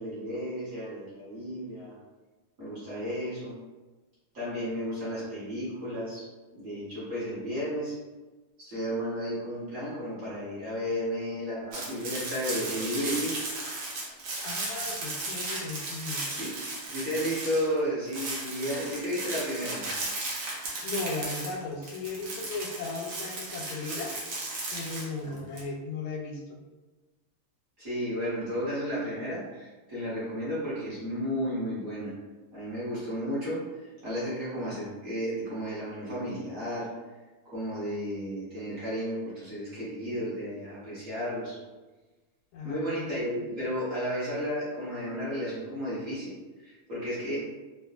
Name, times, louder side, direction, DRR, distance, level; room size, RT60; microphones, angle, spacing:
voice 1, 0.0-1.9 2.6-3.5 4.3-8.0 8.6-13.5 16.4-16.6 16.9-19.9 25.2-25.3 27.8-32.1 32.5-36.9 37.4-41.6 42.6-47.5, equal, 45° right, -11 dB, 1.4 m, -33 dB
sound 1, 11.7-17.8 18.1-25.6, right 2 dB, 65° right, 1.4 m, -35 dB
voice 2, 14.4-16.2 20.8-24.1 24.7-26.6 42.5-43.2, left 3 dB, 85° left, 1 dB, 1.5 m, -36 dB
3.6 x 2.3 x 2.3 m, 1.2 s
omnidirectional pair, 2.4 m